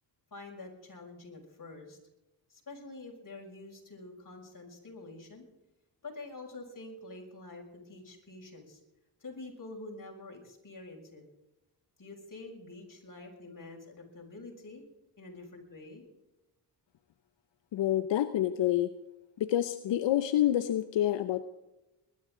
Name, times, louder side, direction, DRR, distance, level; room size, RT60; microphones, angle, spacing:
voice 1, 0.3-2.0 2.5-5.5 6.0-8.8 9.2-11.2 12.0-14.8 15.2-16.0, left 2 dB, 50° left, 1 dB, 6.4 m, -47 dB
voice 2, 17.7-18.9 19.4-21.4, left 12 dB, 90° left, 11 dB, 0.7 m, -27 dB
21.5 x 13.0 x 3.8 m, 0.96 s
cardioid pair, 55°, 43 cm